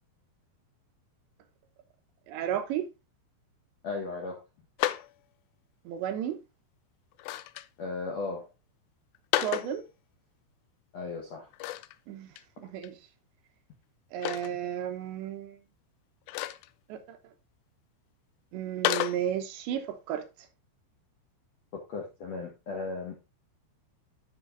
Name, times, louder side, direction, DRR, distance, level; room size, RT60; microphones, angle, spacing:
voice 1, 2.3-2.9 5.9-6.4 9.4-9.8 12.1-12.3 12.6-13.0 14.1-15.6 16.9-17.2 18.5-20.2, right 10 dB, 75° right, 3.1 m, -33 dB
voice 2, 3.8-4.4 7.8-8.5 10.9-11.5 21.7-23.2, left 3 dB, 65° left, 1.6 m, -36 dB
sound 1, 4.8-5.1 7.1-7.7 9.1-9.7 11.5-12.0 12.4-12.5 12.8-12.9 14.2-14.5 16.3-16.7 18.8-19.2, left 15 dB, 85° left, 2.5 m, -30 dB
11.0 x 7.4 x 2.5 m
omnidirectional pair, 5.4 m